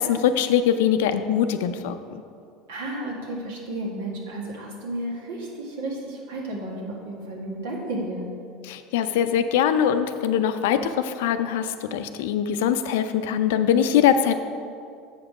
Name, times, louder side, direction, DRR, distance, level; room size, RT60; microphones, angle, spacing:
voice 1, 0.0-2.2 8.7-14.3, left 9 dB, 80° left, 10 dB, 0.4 m, -22 dB
voice 2, 2.7-8.3, right 1 dB, 85° right, -2 dB, 1.6 m, -32 dB
7.3 x 5.2 x 4.8 m, 2.4 s
supercardioid pair, 105°, 0 cm